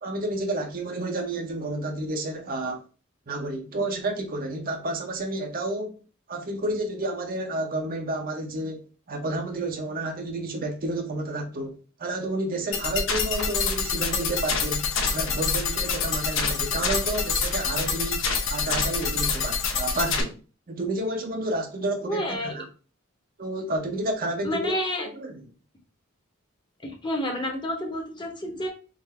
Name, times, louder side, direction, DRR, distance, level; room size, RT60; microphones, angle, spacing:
voice 1, 0.0-2.8 3.3-6.0 6.3-20.4 20.7-22.7 23.4-24.8 25.0-25.4, right 2 dB, 45° right, 0.7 m, -30 dB
sound 1, 12.7-20.2, left 5 dB, 65° left, 0.9 m, -26 dB
voice 2, 22.0-22.6 24.4-25.1 26.8-28.7, equal, 20° left, 0.9 m, -29 dB
3.8 x 2.6 x 4.2 m
head